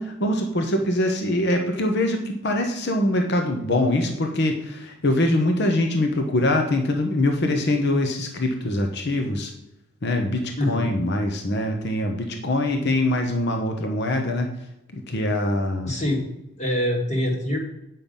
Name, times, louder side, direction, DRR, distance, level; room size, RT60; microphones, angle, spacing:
voice 1, 0.0-9.5 10.0-14.5 14.9-15.9, left 1 dB, 50° left, 4 dB, 0.9 m, -23 dB
voice 2, 10.6-10.9 15.1-15.2 15.8-16.3 16.6-17.6, left 1 dB, 30° left, 1 dB, 1.8 m, -24 dB
9.0 x 5.7 x 5.3 m, 0.86 s
head